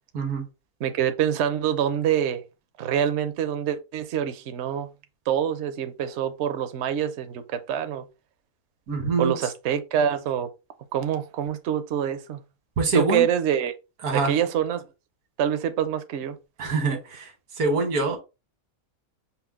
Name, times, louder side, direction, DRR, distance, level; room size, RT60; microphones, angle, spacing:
voice 1, 0.8-2.4 2.8-4.9 5.3-8.0 9.2-10.5 10.9-12.4 12.9-13.7 14.1-14.8 15.4-16.4, right 9 dB, 60° right, 0.7 m, -26 dB
voice 2, 8.9-9.3 12.8-13.3 14.0-14.3 16.6-17.3 17.6-18.2, right 3 dB, 80° right, 1.7 m, -24 dB
5.7 x 2.0 x 3.5 m
omnidirectional pair, 1.5 m